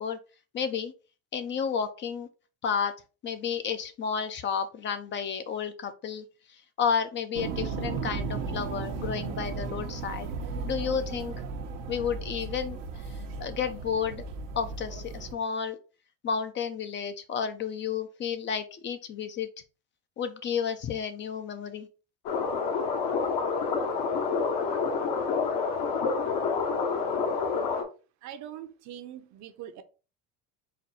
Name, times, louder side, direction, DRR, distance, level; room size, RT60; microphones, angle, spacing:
voice 1, 0.5-0.9 1.3-2.3 2.6-2.9 3.2-6.2 6.8-10.3 10.7-11.3 11.9-12.8 13.1-14.2 14.6-15.8 16.2-19.5 20.2-21.9, left 7 dB, 30° left, 0.4 m, -31 dB
sound 1, 7.3-15.3, right 4 dB, 90° right, 0.9 m, -35 dB
sound 2, 22.2-27.8, left 5 dB, 60° left, 1.2 m, -28 dB
voice 2, 28.2-29.8, right 10 dB, 50° right, 0.7 m, -42 dB
4.2 x 2.2 x 4.1 m
supercardioid pair, 120°, 36 cm